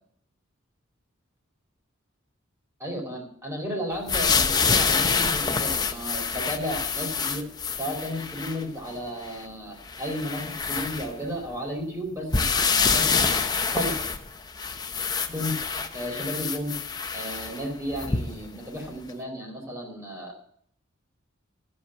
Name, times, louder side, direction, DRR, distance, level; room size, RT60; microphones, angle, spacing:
voice 1, 2.8-7.5 7.8-14.0 15.3-15.6 15.9-16.8 17.1-20.3, equal, 15° right, 1 dB, 4.0 m, -33 dB
sound 1, 4.1-8.6 9.2-9.3 9.9-11.5 12.3-18.5 19.1-19.2, left 5 dB, 20° left, 0.9 m, -26 dB
13.5 x 8.0 x 7.9 m, 0.63 s
head